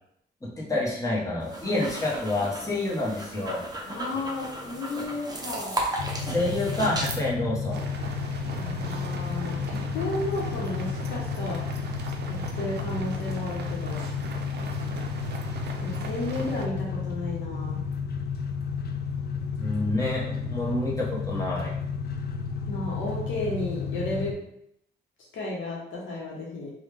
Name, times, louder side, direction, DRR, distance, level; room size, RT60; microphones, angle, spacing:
voice 1, 0.4-3.6 6.3-7.8 19.6-21.7, left 2 dB, 15° left, -5 dB, 1.0 m, -28 dB
sound 1, 1.4-7.2, right 1 dB, 20° right, 0.7 m, -35 dB
voice 2, 3.8-5.7 8.5-11.6 12.3-14.0 15.8-17.8 22.7-24.3 25.3-26.7, left 2 dB, 90° left, -3 dB, 0.9 m, -33 dB
sound 2, 6.0-24.3, left 5 dB, 55° left, 0.4 m, -32 dB
sound 3, 7.7-16.7, right 4 dB, 60° right, 0.5 m, -40 dB
3.1 x 2.3 x 3.3 m, 0.76 s
cardioid pair, 95°, 19 cm